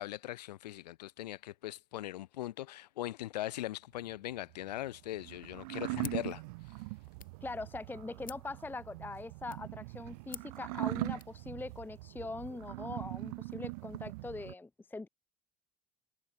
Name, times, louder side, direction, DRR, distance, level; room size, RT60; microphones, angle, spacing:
voice 1, 0.0-6.4, left 14 dB, 75° left, 1.4 m, -40 dB
sound 1, 4.1-14.5, right 26 dB, 65° right, 0.6 m, -41 dB
sound 2, 6.0-11.4, left 9 dB, 40° left, 2.7 m, -53 dB
voice 2, 7.4-15.1, left 3 dB, 10° left, 0.6 m, -42 dB
figure-of-eight pair, 65°, 21 cm